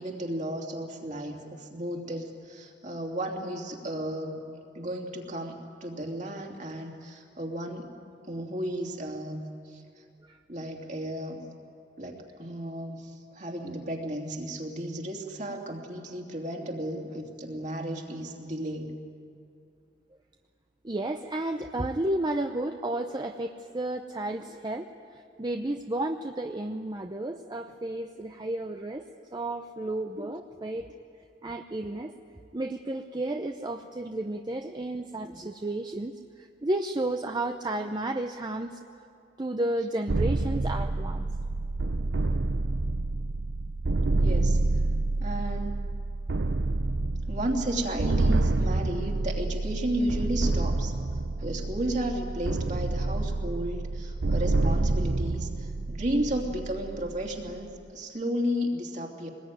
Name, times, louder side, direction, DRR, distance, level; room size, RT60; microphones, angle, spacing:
voice 1, 0.0-4.4 4.7-7.9 8.3-9.8 10.5-11.4 12.0-18.9 30.2-30.3 44.2-44.6 45.2-45.8 47.3-50.9 51.4-59.3, right 1 dB, 45° right, 1 dB, 2.9 m, -33 dB
voice 2, 20.8-29.0 29.3-30.9 31.4-32.1 32.5-38.8 39.4-41.3, right 1 dB, 25° right, 5 dB, 0.7 m, -32 dB
sound 1, 40.1-57.8, right 2 dB, 80° right, 0.7 m, -28 dB
24.0 x 20.5 x 9.3 m, 2.5 s
head